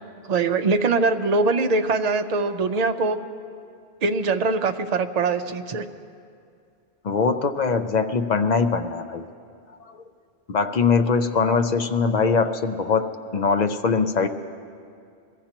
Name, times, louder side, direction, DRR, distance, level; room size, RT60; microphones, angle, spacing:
voice 1, 0.3-3.2 4.0-5.8, right 3 dB, 45° right, 7 dB, 0.6 m, -22 dB
voice 2, 7.0-9.3 10.5-14.3, left 5 dB, 50° left, 7 dB, 0.6 m, -22 dB
22.5 x 15.0 x 2.9 m, 2.4 s
omnidirectional pair, 1.1 m